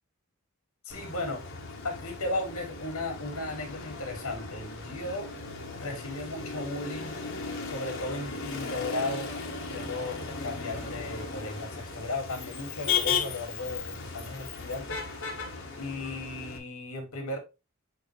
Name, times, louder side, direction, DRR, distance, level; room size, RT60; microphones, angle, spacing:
voice 1, 0.8-1.5 1.8-5.3 5.7-7.2 7.6-9.3 9.7-15.2 15.8-17.4, left 2 dB, 80° left, 2.5 m, -36 dB
Motor vehicle (road), 0.9-16.6, left 5 dB, 60° left, 1.5 m, -36 dB
sound 1, 4.2-16.0, right 1 dB, 50° right, 2.2 m, -56 dB
8.3 x 3.8 x 3.3 m
head